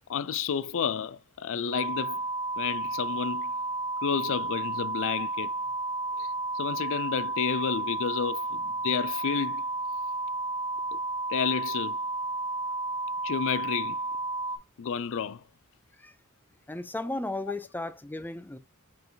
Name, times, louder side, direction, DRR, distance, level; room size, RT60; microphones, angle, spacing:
voice 1, 0.1-2.2 2.6-3.5 4.0-5.5 6.2-6.3 6.5-9.6 11.3-12.0 13.2-14.0 14.8-15.4, left 7 dB, 60° left, 0.4 m, -30 dB
sound 1, 1.7-14.6, right 2 dB, 75° right, 2.8 m, -32 dB
voice 2, 16.7-18.6, left 2 dB, 10° left, 0.5 m, -35 dB
5.3 x 4.6 x 3.9 m
head